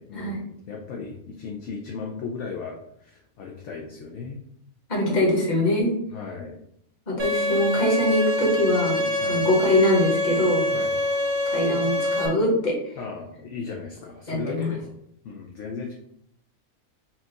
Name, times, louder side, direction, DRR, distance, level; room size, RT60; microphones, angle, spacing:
voice 1, 0.0-4.4 6.1-6.6 9.2-9.4 10.7-10.9 13.0-15.0 15.2-15.9, left 4 dB, 65° left, 0 dB, 0.9 m, -36 dB
voice 2, 4.9-6.0 7.1-10.7 11.5-12.8 14.3-14.7, left 1 dB, 30° left, -3 dB, 1.3 m, -23 dB
Bowed string instrument, 7.2-12.3, left 1 dB, 55° right, 1.1 m, -25 dB
4.3 x 2.4 x 3.9 m, 0.72 s
omnidirectional pair, 1.5 m